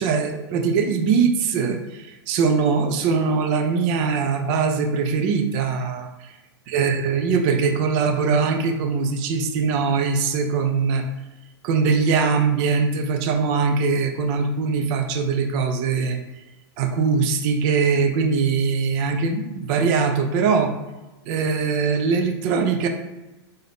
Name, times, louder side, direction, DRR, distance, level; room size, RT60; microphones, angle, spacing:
voice 1, 0.0-6.3 6.7-11.1 11.6-16.2 16.8-20.7 21.3-22.9, right 5 dB, 45° right, 5 dB, 0.6 m, -22 dB
3.5 x 2.7 x 3.5 m, 1.1 s
hypercardioid pair, 115°, 14 cm